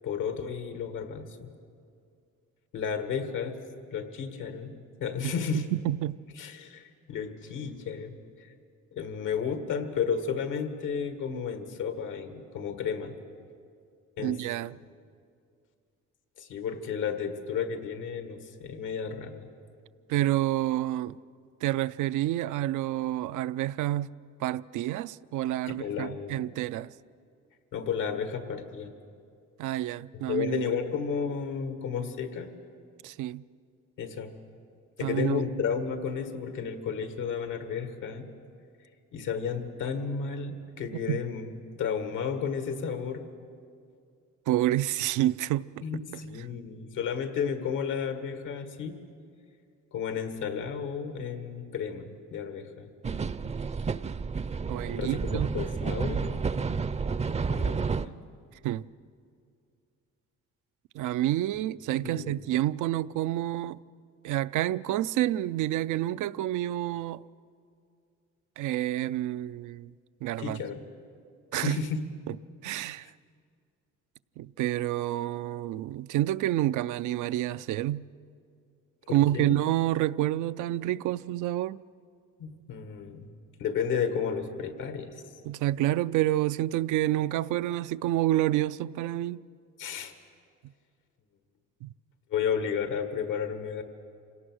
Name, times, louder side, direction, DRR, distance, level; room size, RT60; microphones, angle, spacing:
voice 1, 0.0-1.5 2.7-3.6 3.9-5.6 6.4-8.1 8.9-13.1 14.2-14.4 16.4-19.5 25.7-26.5 27.7-28.9 30.1-32.5 34.0-34.3 35.0-38.3 39.1-43.3 45.8-49.0 49.9-52.9 55.0-56.4 57.5-58.1 62.0-62.3 70.4-70.8 71.5-72.0 79.1-79.6 82.4-83.3 83.6-85.2 89.8-90.1 92.3-93.8, left 6 dB, 85° left, 1.8 m, -32 dB
voice 2, 5.2-6.2 14.2-14.8 20.1-21.2 21.6-24.1 24.4-26.9 29.6-30.8 33.0-33.4 35.0-35.4 41.1-41.2 44.5-45.8 54.7-55.5 58.6-58.8 60.9-63.8 64.2-67.2 68.6-69.9 70.2-70.6 71.5-71.8 72.3-72.4 72.6-73.1 74.4-78.0 79.1-81.8 85.4-89.4 91.8-91.9, right 14 dB, 85° right, 0.5 m, -28 dB
sound 1, 53.0-58.1, right 5 dB, 20° right, 0.5 m, -30 dB
26.5 x 18.0 x 6.3 m
cardioid pair, 90°, 30 cm